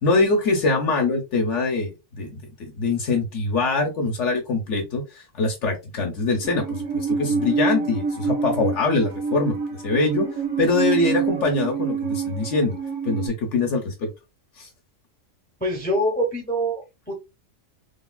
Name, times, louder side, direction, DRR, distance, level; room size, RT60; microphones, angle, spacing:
voice 1, 0.0-10.3 10.6-12.8 13.0-14.1 14.6-14.7, left 3 dB, 65° left, 2 dB, 1.1 m, -23 dB
Musical instrument, 6.4-13.3, right 5 dB, 60° right, 1.1 m, -26 dB
voice 2, 15.6-17.1, equal, 10° left, 0 dB, 0.6 m, -25 dB
3.5 x 2.3 x 2.2 m, 0.25 s
omnidirectional pair, 1.3 m